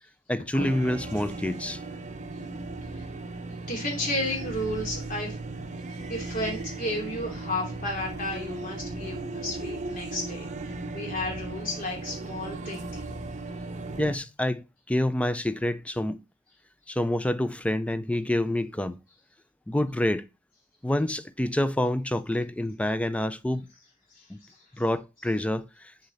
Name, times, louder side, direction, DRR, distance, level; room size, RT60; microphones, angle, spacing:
voice 1, 0.3-1.8 14.0-16.2 16.9-19.0 19.7-20.2 20.8-23.7 24.3-24.4 24.8-25.9, left 1 dB, 5° left, 0.3 m, -27 dB
sound 1, 0.6-14.2, right 2 dB, 35° right, 0.7 m, -36 dB
voice 2, 3.7-5.4 5.9-13.1 24.1-24.6, left 1 dB, 45° left, 2.8 m, -33 dB
6.7 x 4.0 x 4.0 m
head